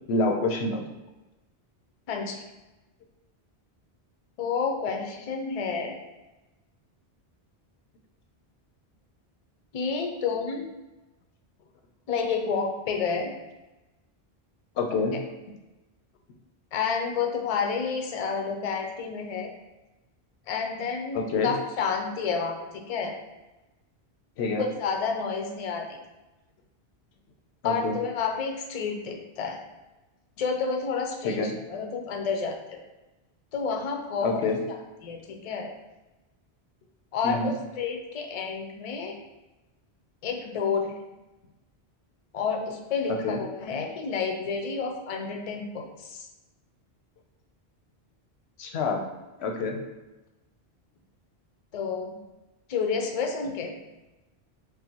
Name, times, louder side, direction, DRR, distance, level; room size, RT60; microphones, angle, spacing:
voice 1, 0.1-0.9 14.8-15.1 21.1-21.5 24.4-24.6 27.6-28.0 31.2-31.5 34.2-34.6 37.2-37.5 43.1-43.4 48.6-49.0 49.4-49.8, left 3 dB, 90° left, 3 dB, 0.9 m, -27 dB
voice 2, 2.1-2.4 4.4-6.0 9.7-10.7 12.1-13.3 16.7-19.5 20.5-23.1 24.6-26.0 27.6-29.6 30.4-32.8 33.5-34.5 35.0-35.7 37.1-39.1 40.2-41.0 42.3-46.3 51.7-52.2 52.7-53.7, left 5 dB, 50° left, 3 dB, 0.5 m, -30 dB
5.7 x 2.0 x 2.9 m, 1.0 s
omnidirectional pair, 1.1 m